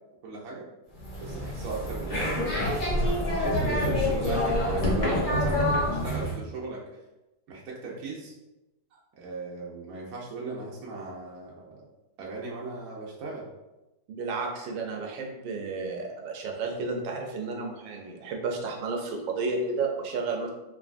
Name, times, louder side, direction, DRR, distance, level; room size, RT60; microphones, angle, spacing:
voice 1, 0.2-0.7 1.2-2.7 3.4-6.8 7.5-8.3 9.2-11.8 12.2-13.5, right 3 dB, 60° right, -4 dB, 1.0 m, -36 dB
sound 1, 0.9-6.4, left 1 dB, 45° left, 0.6 m, -27 dB
voice 2, 14.1-20.5, right 4 dB, 80° right, 1 dB, 1.4 m, -32 dB
3.9 x 3.5 x 2.5 m, 1.0 s
omnidirectional pair, 2.1 m